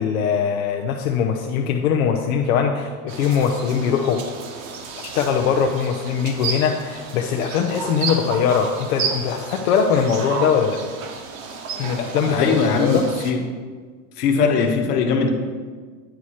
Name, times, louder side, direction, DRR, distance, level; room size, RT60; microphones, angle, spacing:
voice 1, 0.0-4.2 5.0-10.8 11.8-13.0, left 7 dB, 65° left, 3 dB, 0.7 m, -21 dB
sound 1, 3.1-13.3, right 5 dB, 60° right, 1.1 m, -32 dB
voice 2, 12.3-13.4 14.2-15.3, left 5 dB, 85° left, 4 dB, 1.3 m, -20 dB
9.1 x 4.8 x 4.2 m, 1.5 s
supercardioid pair, 165°, 45 cm